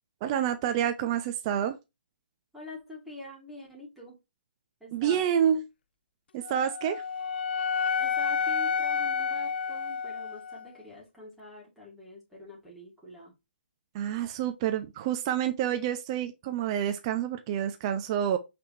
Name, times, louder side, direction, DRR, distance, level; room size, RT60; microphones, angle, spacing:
voice 1, 0.2-1.8 4.9-5.6 6.3-7.0 13.9-18.4, right 9 dB, 30° right, 0.5 m, -28 dB
voice 2, 2.5-4.2 4.8-5.2 8.0-13.3, left 2 dB, ahead, 2.1 m, -45 dB
Wind instrument woodwind instrument, 6.4-10.6, left 6 dB, 65° left, 0.3 m, -30 dB
5.6 x 3.5 x 2.6 m
hypercardioid pair, 150°, 6 cm